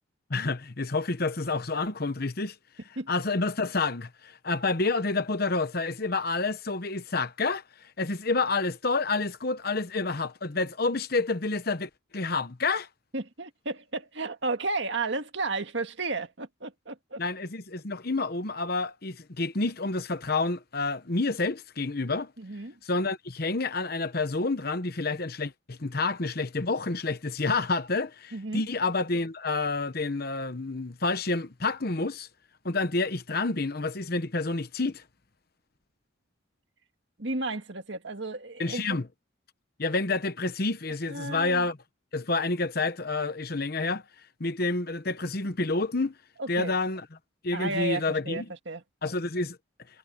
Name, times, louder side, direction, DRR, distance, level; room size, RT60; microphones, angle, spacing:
voice 1, 0.3-2.5 3.1-12.9 17.2-22.3 22.8-32.3 32.6-35.0 38.6-39.1 39.8-41.8 42.1-44.0 44.4-46.1 46.5-47.1 47.4-48.5 49.0-49.6, left 3 dB, 50° left, 1.0 m, -29 dB
voice 2, 13.1-17.2 22.4-22.8 28.3-28.6 37.2-39.0 41.1-41.7 46.4-46.8 47.5-48.8, right 2 dB, 60° right, 1.9 m, -33 dB
head